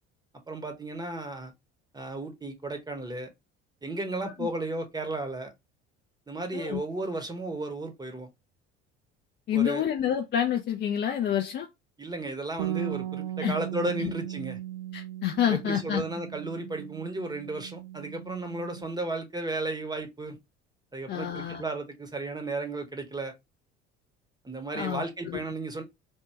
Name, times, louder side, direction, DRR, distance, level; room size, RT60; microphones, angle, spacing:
voice 1, 0.5-1.5 1.9-3.3 3.8-5.5 6.3-8.3 9.5-9.8 12.0-14.6 15.5-20.4 20.9-23.3 24.4-25.8, right 2 dB, 10° right, 0.9 m, -34 dB
voice 2, 9.5-11.7 13.4-13.5 14.9-16.0 21.1-21.6 24.8-25.4, left 9 dB, 30° left, 0.4 m, -28 dB
Bass guitar, 12.6-18.8, right 13 dB, 65° right, 0.5 m, -37 dB
3.5 x 2.2 x 2.8 m
figure-of-eight pair, 60°, 36 cm